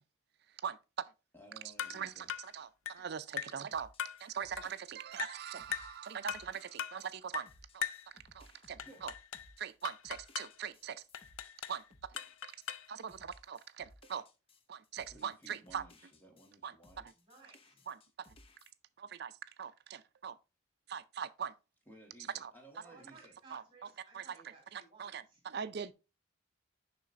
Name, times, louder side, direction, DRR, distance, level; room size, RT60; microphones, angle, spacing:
voice 1, 1.3-2.3 8.8-9.0 15.1-17.1 21.9-23.3, right 1 dB, 10° left, 1.4 m, -57 dB
sound 1, 1.8-2.0 2.3-2.5 2.9-3.0 3.4-3.6 4.0-4.2 4.6-4.7 5.2-5.4 5.7-6.0 6.3-6.5 6.8-7.0 7.3-7.5 7.8-8.1 8.8-9.5 9.8-10.5 11.1-11.8 12.2-12.9, left 9 dB, 85° left, 0.4 m, -40 dB
voice 2, 1.9-3.9 4.2-7.5 7.7-7.9 8.1-9.1 9.6-11.0 11.7-11.8 12.9-14.2 14.7-15.8 16.6-17.1 17.9-18.0 19.0-20.4 20.9-21.5 22.4-22.5 23.5-23.6 24.1-24.3 24.7-25.9, right 7 dB, 55° right, 0.4 m, -42 dB
sound 2, 3.7-16.5 16.8-18.7, left 1 dB, 30° left, 0.5 m, -62 dB
voice 3, 17.2-17.9 22.8-25.4, right 3 dB, 25° right, 3.0 m, -60 dB
6.9 x 5.6 x 2.5 m
head